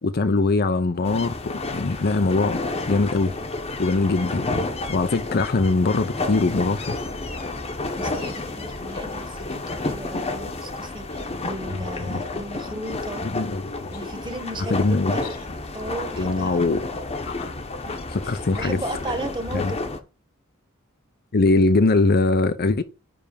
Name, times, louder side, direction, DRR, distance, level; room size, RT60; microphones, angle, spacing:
voice 1, 0.0-2.6 2.9-3.3 3.8-7.0 12.0-12.2 13.2-13.9 14.7-15.3 16.2-16.8 17.2-17.5 18.1-18.8 19.5-19.7 21.3-22.8, left 3 dB, 45° left, 0.6 m, -22 dB
sound 1, 1.0-20.0, left 2 dB, 30° left, 1.0 m, -31 dB
voice 2, 8.0-13.2 13.9-15.5 15.7-16.8 18.2-19.9, right 1 dB, 20° right, 1.4 m, -35 dB
10.0 x 3.4 x 7.0 m
head